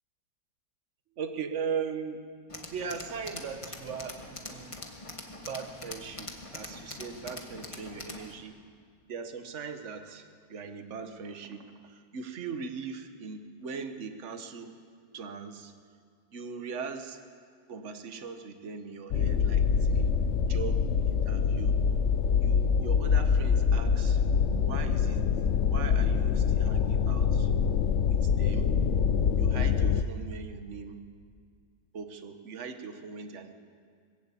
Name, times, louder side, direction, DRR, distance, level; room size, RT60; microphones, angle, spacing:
voice 1, 1.2-2.3 2.7-4.8 5.2-8.6 9.1-14.8 15.1-15.7 16.3-17.2 17.7-20.1 20.5-21.8 22.4-24.2 24.6-25.2 25.7-27.5 28.0-28.7 29.4-31.0 31.9-33.5, right 6 dB, 45° right, 7 dB, 1.4 m, -39 dB
Tools, 2.5-8.3, left 2 dB, 20° left, 1.5 m, -43 dB
sound 1, 19.1-30.0, left 6 dB, 60° left, 0.7 m, -25 dB
21.0 x 15.0 x 8.5 m, 2.1 s
omnidirectional pair, 2.0 m